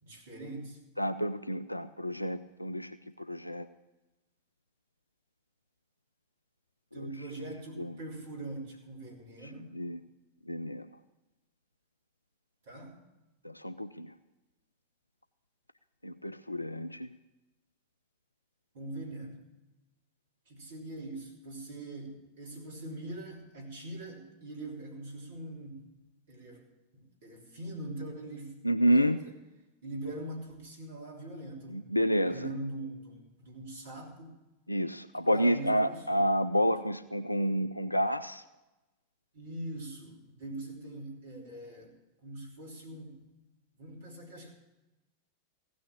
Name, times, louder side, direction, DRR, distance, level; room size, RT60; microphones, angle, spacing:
voice 1, 0.0-0.8 6.9-9.7 12.6-13.0 18.7-19.4 20.5-25.8 26.3-28.6 28.9-29.3 29.8-32.0 32.3-34.3 35.1-36.3 39.3-42.0 42.2-43.2 43.8-44.5, right 2 dB, 60° right, -1 dB, 3.3 m, -42 dB
voice 2, 1.0-2.9 3.3-3.7 7.8-7.9 9.7-10.0 10.5-10.9 13.4-14.1 16.0-17.1 28.6-29.2 31.7-32.3 34.7-38.4, equal, 85° left, 12 dB, 0.4 m, -29 dB
16.0 x 6.3 x 8.6 m, 1.0 s
figure-of-eight pair, 90°, 0 cm